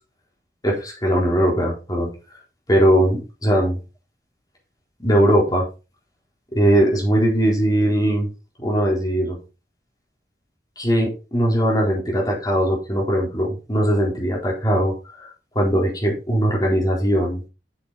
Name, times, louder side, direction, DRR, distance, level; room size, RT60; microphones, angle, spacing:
voice 1, 0.6-2.1 2.7-3.8 5.0-5.7 6.5-8.3 8.6-9.4 10.8-15.3 15.5-17.4, equal, 20° left, -2 dB, 4.1 m, -20 dB
8.6 x 7.1 x 4.2 m, 0.30 s
head